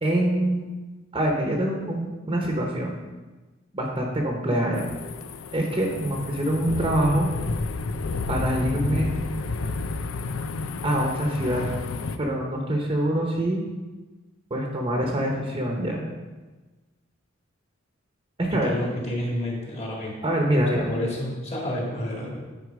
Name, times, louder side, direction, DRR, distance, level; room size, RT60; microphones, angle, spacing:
voice 1, 0.0-0.7 1.1-3.0 3.7-4.9 5.5-7.3 8.3-9.1 10.8-11.6 12.2-13.6 14.5-16.0 18.4-18.8 20.2-20.9, right 1 dB, 25° right, 0 dB, 1.0 m, -25 dB
sound 1, 4.8-12.2, left 3 dB, 85° left, 0.5 m, -31 dB
voice 2, 18.5-20.2 20.7-22.4, left 1 dB, 35° left, -2 dB, 2.0 m, -30 dB
9.6 x 4.7 x 4.8 m, 1.2 s
head